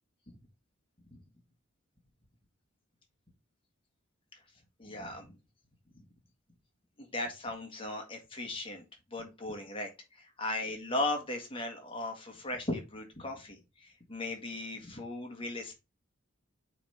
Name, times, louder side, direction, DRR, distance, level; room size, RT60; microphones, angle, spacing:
voice 1, 4.8-5.3 7.0-8.8 9.1-15.7, left 2 dB, 25° left, 3 dB, 1.7 m, -37 dB
8.5 x 3.5 x 4.2 m, 0.26 s
head